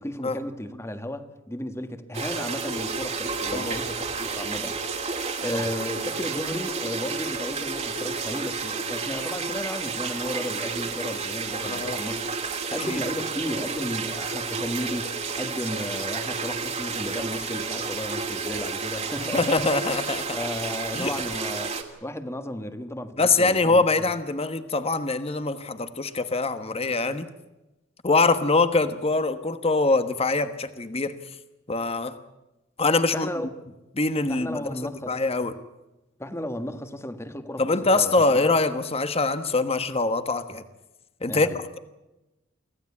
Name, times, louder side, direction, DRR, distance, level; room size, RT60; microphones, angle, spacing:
voice 1, 0.0-5.0 5.4-12.3 12.7-19.6 20.3-23.8 33.1-33.5 34.3-35.2 36.2-38.5 41.3-41.6, left 1 dB, 15° left, 9 dB, 1.7 m, -34 dB
sound 1, 2.1-21.8, right 4 dB, 35° right, 2.6 m, -31 dB
voice 2, 11.6-12.0 12.8-13.0 19.3-20.4 20.9-21.1 23.2-27.3 28.0-31.1 31.7-32.2 32.8-33.3 34.0-35.5 37.6-40.6 41.2-41.8, left 3 dB, 30° left, 11 dB, 1.2 m, -24 dB
25.0 x 16.0 x 8.6 m, 1.0 s
head